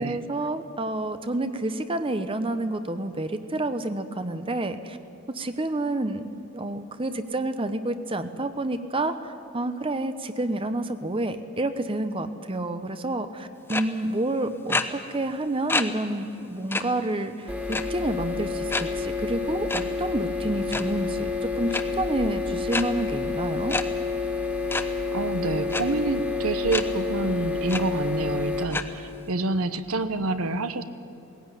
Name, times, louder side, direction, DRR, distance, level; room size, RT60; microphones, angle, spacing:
voice 1, 0.0-5.0 5.3-6.2 6.5-23.7, right 1 dB, 25° right, 10 dB, 0.9 m, -29 dB
sound 1, 13.7-13.8 14.7-14.8 15.7-15.8 16.2-16.3 16.7-16.8 17.7-18.0 18.7-18.8 19.7-19.8 20.6-20.8 21.7-21.8 22.7-22.8 23.7-23.8 24.7-24.8 25.7-25.8 26.7-26.8 27.3-27.4 27.7-27.8 28.7-28.8, left 2 dB, 10° left, 0.8 m, -26 dB
sound 2, 17.5-28.6, left 4 dB, 5° right, 2.1 m, -29 dB
voice 2, 25.1-30.8, right 3 dB, 75° right, 11 dB, 1.0 m, -27 dB
19.0 x 16.5 x 9.9 m, 2.9 s
head